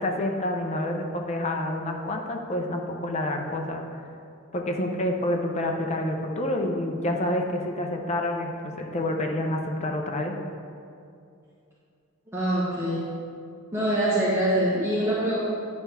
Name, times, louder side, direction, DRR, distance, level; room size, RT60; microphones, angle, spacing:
voice 1, 0.0-3.8 4.5-10.3, left 1 dB, 35° left, 2 dB, 0.6 m, -28 dB
voice 2, 12.3-13.1 13.7-15.4, right 1 dB, 15° right, -8 dB, 1.0 m, -24 dB
9.3 x 3.5 x 5.6 m, 2.5 s
head